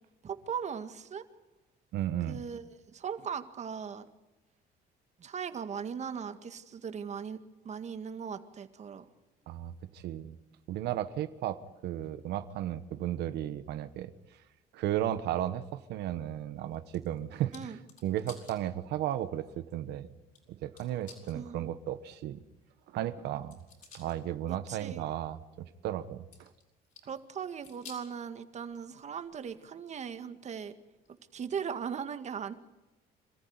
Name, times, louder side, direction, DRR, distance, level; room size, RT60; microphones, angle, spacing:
voice 1, 0.2-1.2 2.3-2.6 2.9-4.1 5.2-7.4 7.6-9.1 17.5-17.8 21.3-21.8 24.5-25.1 27.1-30.7 31.3-32.5, right 7 dB, 40° right, 9 dB, 1.9 m, -38 dB
voice 2, 1.9-2.4 9.5-10.3 10.7-14.1 14.7-17.8 18.0-20.1 20.5-22.4 22.9-23.6 23.9-26.5, right 12 dB, 80° right, 11 dB, 1.2 m, -34 dB
sound 1, 16.7-18.6 19.1-19.2 20.3-20.4 20.8-21.4 23.2-24.2 24.6-24.9 26.3-27.2 27.5-28.1 28.7-29.6 30.0-30.1 31.0-31.1, left 5 dB, 50° left, 7.2 m, -53 dB
26.5 x 14.5 x 9.6 m, 1.1 s
cardioid pair, 110°, 17 cm